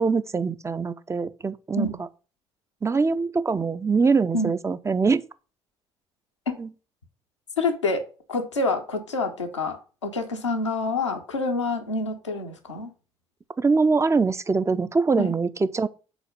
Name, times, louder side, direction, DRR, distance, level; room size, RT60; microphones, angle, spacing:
voice 1, 0.0-2.1 2.8-5.2 6.6-6.7 13.6-15.9, right 4 dB, 20° right, 0.4 m, -23 dB
voice 2, 7.6-8.0 8.3-12.9 15.2-15.3, left 3 dB, 90° left, 0.8 m, -27 dB
5.0 x 4.2 x 5.2 m
figure-of-eight pair, 50°, 15 cm